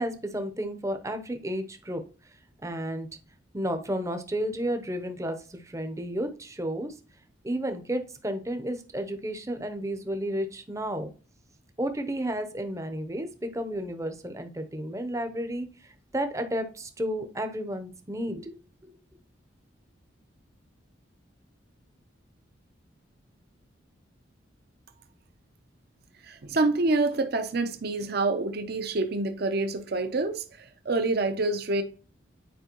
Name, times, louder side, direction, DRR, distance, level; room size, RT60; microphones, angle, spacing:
voice 1, 0.0-2.0 2.6-3.1 3.5-6.9 7.4-11.1 11.8-15.7 16.1-18.5, equal, 15° right, 0.7 m, -32 dB
voice 2, 26.2-31.8, right 2 dB, 55° right, 0.7 m, -27 dB
9.4 x 4.7 x 3.0 m
head